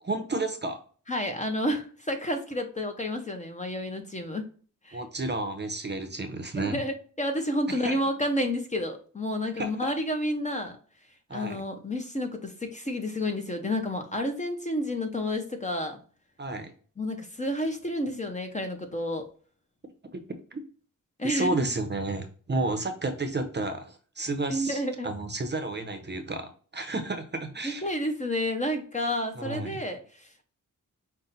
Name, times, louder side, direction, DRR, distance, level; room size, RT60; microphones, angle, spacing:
voice 1, 0.0-0.8 4.9-6.8 7.7-8.0 9.6-9.9 11.3-11.6 16.4-16.7 20.1-20.2 20.5-20.6 21.2-27.9 29.3-29.8, right 2 dB, 30° right, 7 dB, 0.6 m, -32 dB
voice 2, 1.1-4.4 4.8-5.0 6.6-10.8 11.3-16.0 17.0-19.3 21.2-21.7 24.5-25.1 27.6-30.4, left 1 dB, 20° left, 5 dB, 0.7 m, -30 dB
5.5 x 2.2 x 4.0 m, 0.42 s
wide cardioid pair, 120°, 33 cm